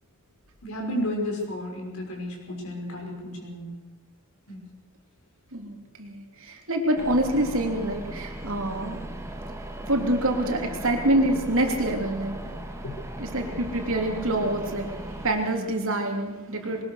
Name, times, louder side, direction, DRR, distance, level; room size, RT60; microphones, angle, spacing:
voice 1, 0.6-3.7 4.5-4.7 12.8-12.9, left 1 dB, 75° left, 0 dB, 6.1 m, -32 dB
voice 2, 5.5-9.0 9.9-12.6 13.2-16.8, right 1 dB, 65° right, 2 dB, 3.3 m, -26 dB
sound 1, 7.0-15.3, right 1 dB, 15° right, 1.9 m, -37 dB
21.5 x 19.5 x 6.6 m, 1.1 s
head